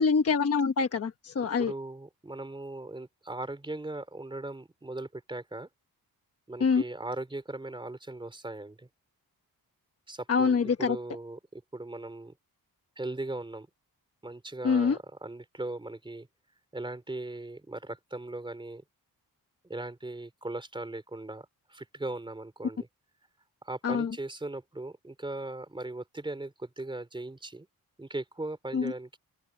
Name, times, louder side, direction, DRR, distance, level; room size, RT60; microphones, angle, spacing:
voice 1, 0.0-1.7 6.6-6.8 10.3-11.0 14.6-15.0 23.8-24.1 28.7-28.9, left 5 dB, 40° left, 1.2 m, -25 dB
voice 2, 1.6-5.7 6.5-8.9 10.1-12.3 13.0-13.7 14.2-16.3 16.7-18.8 19.6-22.9 23.6-27.7 28.0-29.2, right 2 dB, 15° right, 3.6 m, -39 dB
wide cardioid pair, 165°, 37 cm